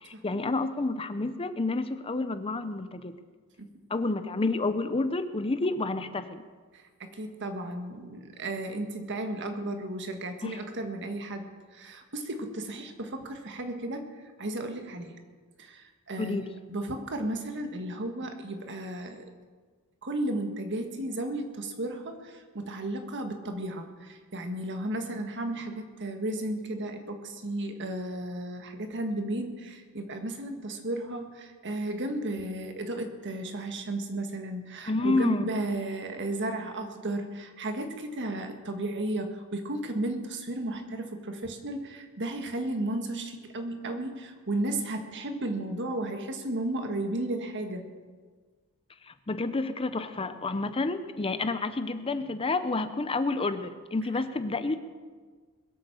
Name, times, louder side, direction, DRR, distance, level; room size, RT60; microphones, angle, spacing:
voice 1, 0.0-3.1 3.9-6.4 10.4-10.6 16.2-16.5 34.9-35.5 49.0-54.8, left 3 dB, 25° left, 11 dB, 0.6 m, -29 dB
voice 2, 6.7-14.1 14.4-15.1 15.6-19.2 20.0-47.9, right 1 dB, 55° right, 6 dB, 1.6 m, -34 dB
21.5 x 8.0 x 6.9 m, 1.5 s
head